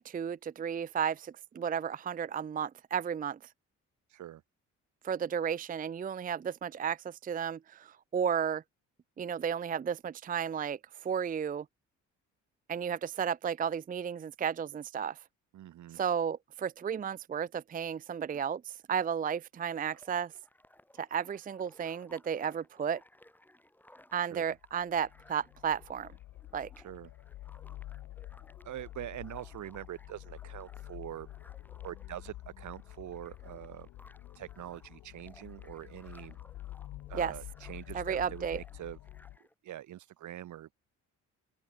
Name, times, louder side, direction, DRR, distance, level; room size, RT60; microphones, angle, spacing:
voice 1, 0.0-3.4 5.0-8.6 9.2-11.7 12.7-15.2 15.9-20.3 21.0-23.0 24.1-26.1 26.5-26.7 37.1-37.3 37.9-38.6, right 7 dB, 30° right, 0.5 m, -33 dB
voice 2, 4.1-4.4 15.5-16.0 24.3-24.4 26.8-27.1 28.6-31.3 31.8-33.9 34.3-36.4 37.1-39.0 39.6-40.7, right 12 dB, 75° right, 2.7 m, -44 dB
sound 1, 19.9-39.5, left 1 dB, 5° left, 2.9 m, -61 dB
sound 2, 24.6-39.4, left 15 dB, 85° left, 1.7 m, -48 dB
open air
cardioid pair, 90°, 30 cm